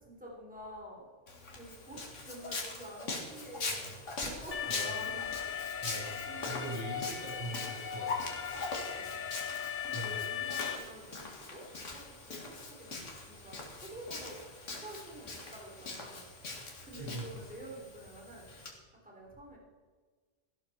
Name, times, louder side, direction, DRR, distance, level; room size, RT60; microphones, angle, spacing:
voice 1, 0.0-3.9 4.2-5.7 6.1-6.8 8.7-9.1 9.8-14.4 14.7-16.3 16.8-18.5 19.0-19.6, right 1 dB, 5° right, -2 dB, 3.4 m, -48 dB
Walk footsteps, 1.3-18.7, left 3 dB, 90° left, 2.4 m, -42 dB
Alarm, 4.5-10.8, left 9 dB, 45° left, 0.9 m, -38 dB
voice 2, 6.4-8.3 9.9-10.2 16.9-17.3, right 1 dB, 20° right, -5 dB, 3.3 m, -41 dB
15.5 x 12.0 x 4.3 m, 1.4 s
omnidirectional pair, 1.2 m